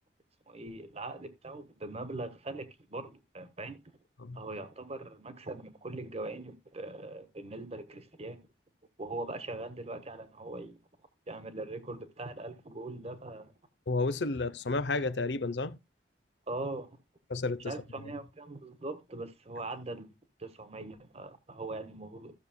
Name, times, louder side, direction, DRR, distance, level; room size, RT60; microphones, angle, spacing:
voice 1, 0.5-3.8 4.3-8.4 9.0-10.8 11.3-13.5 16.5-17.0 17.6-22.3, right 2 dB, 35° right, 1.4 m, -41 dB
voice 2, 13.9-15.8 17.3-17.7, left 3 dB, 70° left, 0.7 m, -31 dB
15.5 x 6.8 x 2.2 m
head